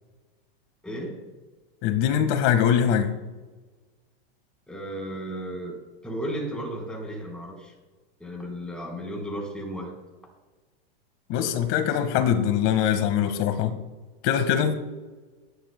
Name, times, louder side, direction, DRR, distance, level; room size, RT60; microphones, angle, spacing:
voice 1, 0.8-1.2 4.7-5.8 6.0-7.7 8.2-9.9, right 1 dB, 5° left, -2 dB, 4.1 m, -34 dB
voice 2, 1.8-3.1 11.3-13.8 14.2-14.8, left 9 dB, 45° left, 9 dB, 1.6 m, -22 dB
22.5 x 11.5 x 2.2 m, 1.3 s
supercardioid pair, 140°, 29 cm